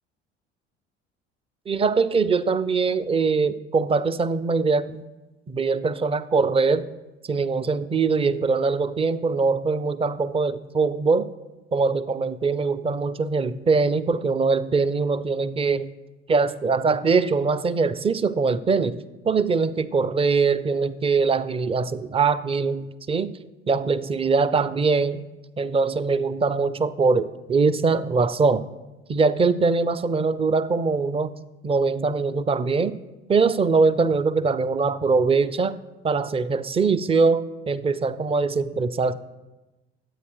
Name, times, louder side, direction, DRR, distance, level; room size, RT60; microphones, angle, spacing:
voice 1, 1.7-5.0 5.5-6.9 7.3-11.3 11.7-15.9 16.3-19.0 19.2-23.3 23.7-25.2 25.6-28.7 29.1-31.3 31.6-32.9 33.3-35.8 36.0-39.1, right 4 dB, 15° right, 15 dB, 0.5 m, -22 dB
11.0 x 8.3 x 4.7 m, 1.1 s
figure-of-eight pair, 60°, 33 cm